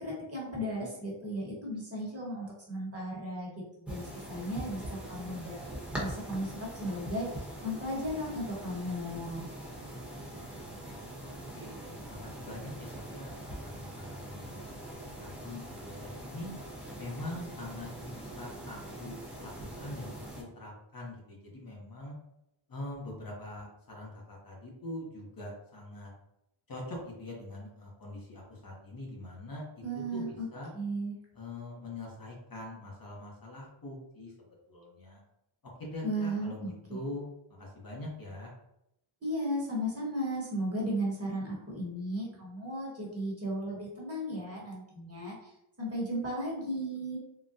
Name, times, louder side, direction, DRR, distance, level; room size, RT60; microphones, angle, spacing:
voice 1, 0.0-5.6 5.9-9.5 29.8-30.5 30.7-31.1 36.0-36.7 39.2-45.5 45.8-47.2, equal, 30° right, -4 dB, 1.1 m, -35 dB
sound 1, 3.9-20.4, right 1 dB, 5° right, 0.9 m, -43 dB
voice 2, 9.8-10.5 11.2-11.8 12.1-16.5 17.0-19.5 19.8-22.1 22.7-26.1 26.7-29.8 30.1-30.7 31.3-34.3 34.7-35.2 35.8-37.2 37.5-38.5, left 1 dB, 45° left, -2 dB, 0.8 m, -43 dB
3.8 x 2.1 x 2.6 m, 0.82 s
wide cardioid pair, 120°, 49 cm